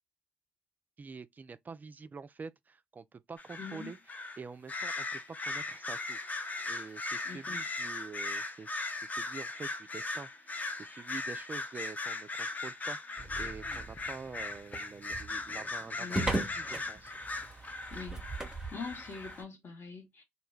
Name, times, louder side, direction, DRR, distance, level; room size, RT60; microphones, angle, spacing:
voice 1, 1.0-4.0 4.4-17.1, right 5 dB, 30° right, 0.3 m, -47 dB
sound 1, 3.4-4.4 4.7-19.4, left 3 dB, 30° left, 0.6 m, -38 dB
voice 2, 3.6-3.9 7.2-7.6 16.0-16.4 17.9-18.2 18.7-20.2, left 5 dB, 45° left, 1.0 m, -43 dB
sound 2, 13.2-19.4, right 2 dB, 10° right, 0.7 m, -39 dB
2.2 x 2.1 x 3.1 m
hypercardioid pair, 50°, 6 cm